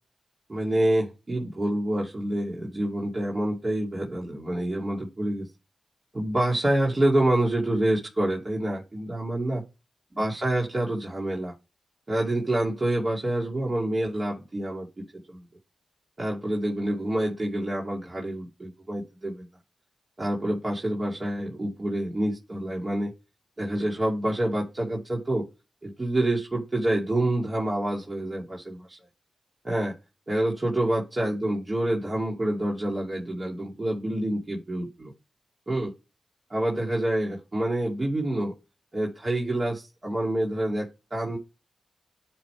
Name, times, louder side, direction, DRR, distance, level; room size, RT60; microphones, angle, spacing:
voice 1, 0.5-5.5 6.1-9.6 10.2-11.5 12.1-14.9 15.3-15.4 16.2-19.5 20.2-23.1 23.6-25.5 25.8-29.0 29.6-30.0 30.3-35.1 35.7-35.9 36.5-38.5 38.9-41.4, right 1 dB, 30° right, 2.6 m, -27 dB
9.9 x 3.4 x 4.6 m
cardioid pair, 75°, 0 cm